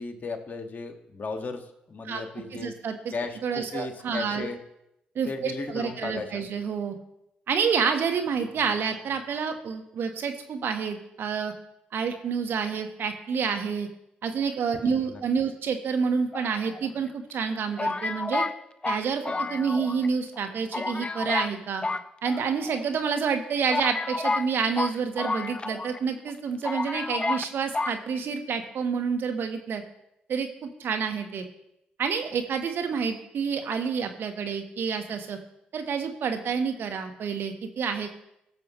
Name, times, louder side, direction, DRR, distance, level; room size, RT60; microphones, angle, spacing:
voice 1, 0.0-2.7 3.1-4.6 5.3-6.5 14.8-15.2, left 3 dB, 45° left, 5 dB, 1.8 m, -35 dB
voice 2, 2.5-3.0 3.4-4.5 5.1-7.0 7.5-11.5 11.9-13.9 14.2-18.4 18.9-21.8 22.2-29.8 30.3-31.4 32.0-35.4 35.7-38.1, right 6 dB, 60° right, 7 dB, 1.3 m, -28 dB
sound 1, 16.3-17.1 17.8-20.1 20.4-20.5 20.7-21.5 21.8-22.8 23.3-23.4 23.7-26.0 26.3-26.4 26.6-27.5 27.7-28.0, left 3 dB, 25° left, 0.6 m, -30 dB
17.5 x 6.8 x 3.1 m, 0.82 s
hypercardioid pair, 45°, 4 cm